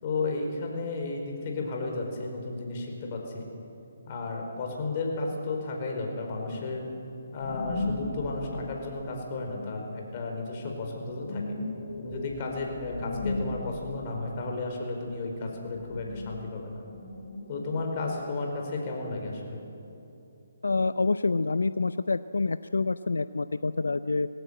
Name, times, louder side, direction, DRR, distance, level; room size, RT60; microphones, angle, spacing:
voice 1, 0.0-3.5 4.1-6.9 7.3-11.6 12.0-16.8 17.5-19.6, left 3 dB, 35° left, 1 dB, 4.8 m, -33 dB
sound 1, 6.5-10.1 10.6-14.7 15.0-18.2, left 2 dB, 60° left, 5.3 m, -37 dB
voice 2, 20.6-24.3, left 3 dB, 85° left, 14 dB, 0.5 m, -27 dB
20.0 x 16.5 x 8.9 m, 2.8 s
hypercardioid pair, 150°, 0 cm